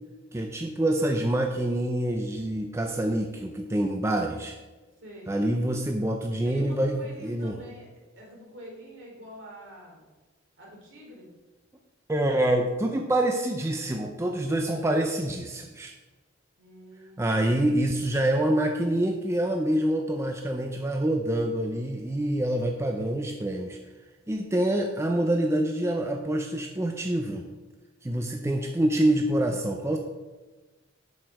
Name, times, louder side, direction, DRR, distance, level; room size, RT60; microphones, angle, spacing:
voice 1, 0.3-4.6 5.3-7.6 12.1-15.9 17.2-23.8 24.3-27.4 28.0-30.0, right 1 dB, 15° right, 3 dB, 0.5 m, -26 dB
voice 2, 5.0-5.4 6.4-7.9 8.2-10.1 10.6-11.3 16.6-17.8, equal, 65° right, -2 dB, 3.0 m, -47 dB
7.7 x 6.4 x 4.8 m, 1.2 s
head